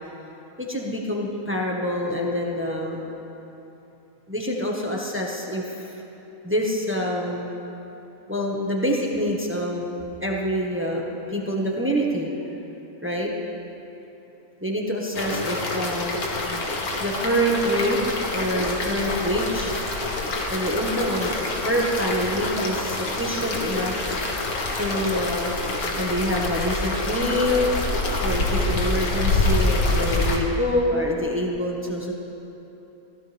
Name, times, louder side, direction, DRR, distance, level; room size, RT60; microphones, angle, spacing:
voice 1, 0.6-3.0 4.3-5.9 6.4-7.5 8.3-9.9 10.2-12.3 13.0-13.3 14.6-16.2 17.0-18.0 18.3-19.7 20.5-21.4 21.6-23.9 24.7-25.6 26.0-27.7 28.2-32.1, equal, 10° right, -2 dB, 1.5 m, -26 dB
sound 1, 15.1-30.4, left 2 dB, 80° left, 2.0 m, -26 dB
22.5 x 15.5 x 3.6 m, 3.0 s
omnidirectional pair, 1.5 m